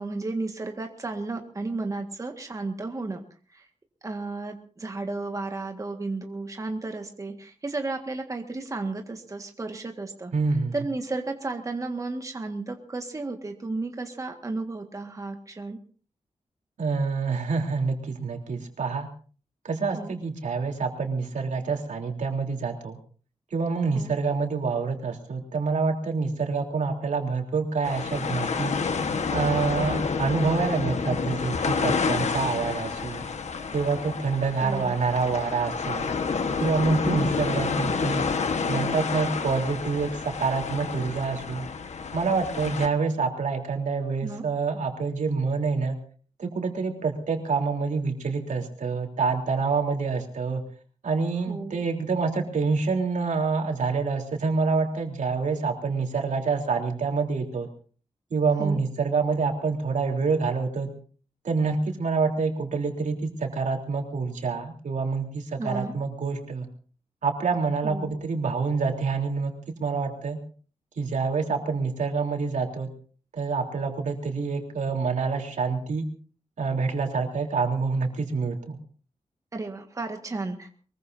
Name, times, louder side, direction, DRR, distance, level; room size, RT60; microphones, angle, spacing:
voice 1, 0.0-3.2 3.5-3.7 4.0-15.8 19.9-20.2 23.9-24.1 34.6-35.0 37.1-37.4 44.2-44.5 51.5-51.8 58.6-58.8 65.6-65.9 67.8-68.1 79.5-80.7, right 3 dB, 25° right, 4 dB, 1.8 m, -33 dB
voice 2, 10.3-10.8 16.8-19.1 19.6-23.0 23.5-28.7 29.3-33.2 33.7-36.1 36.6-38.3 38.7-41.7 42.1-46.0 46.4-50.6 51.0-57.7 58.3-60.9 61.4-66.7 67.2-69.5 69.8-70.4 71.0-72.9 73.3-76.0 76.6-78.8, right 4 dB, 90° right, 2 dB, 3.5 m, -27 dB
sound 1, 27.8-42.9, left 5 dB, 65° left, 1.4 m, -29 dB
23.5 x 22.0 x 2.7 m, 0.42 s
wide cardioid pair, 160°, 12 cm